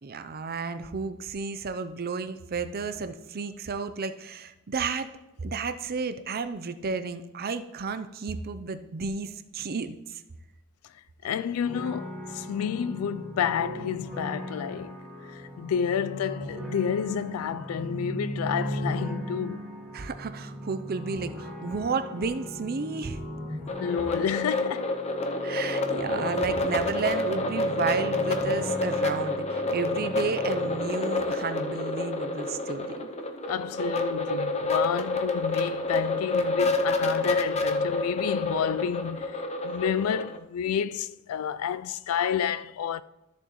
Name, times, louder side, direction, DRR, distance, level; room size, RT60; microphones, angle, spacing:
voice 1, 0.0-5.1 5.4-10.2 19.9-23.2 25.4-33.1, right 4 dB, 45° right, 0.6 m, -32 dB
voice 2, 11.2-15.0 15.2-19.7 23.8-25.0 33.5-43.0, left 8 dB, 80° left, 0.3 m, -30 dB
sound 1, 11.6-30.8, equal, ahead, 1.4 m, -38 dB
sound 2, 23.7-40.4, left 2 dB, 30° left, 0.6 m, -28 dB
13.0 x 6.9 x 3.1 m
head